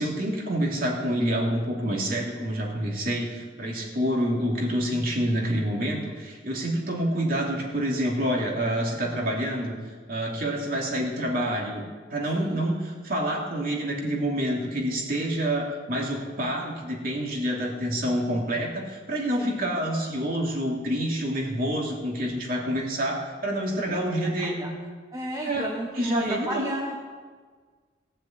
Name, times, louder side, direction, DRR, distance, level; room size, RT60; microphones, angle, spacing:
voice 1, 0.0-9.8 10.1-11.8 12.1-24.7 25.4-25.7 26.0-26.7, right 1 dB, 50° right, -1 dB, 2.7 m, -27 dB
voice 2, 24.4-24.7 25.1-27.0, right 1 dB, 20° right, -1 dB, 1.1 m, -33 dB
15.5 x 7.3 x 8.7 m, 1.5 s
head